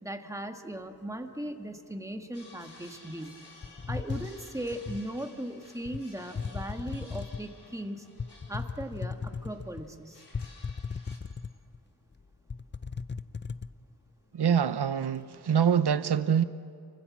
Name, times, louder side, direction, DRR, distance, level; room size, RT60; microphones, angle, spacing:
voice 1, 0.0-3.4 3.9-8.1 8.5-10.2, right 1 dB, 10° right, 5 dB, 1.7 m, -38 dB
sound 1, 2.3-11.2, left 3 dB, 70° left, 4.8 m, -55 dB
sound 2, 3.6-5.1 5.8-6.0 6.3-7.5 8.2-9.8 10.3-11.8 12.1-12.2 12.5-13.7, left 5 dB, 25° left, 0.6 m, -36 dB
voice 2, 14.3-16.4, right 8 dB, 70° right, 12 dB, 0.9 m, -25 dB
29.0 x 25.0 x 7.4 m, 2.5 s
wide cardioid pair, 90°, 41 cm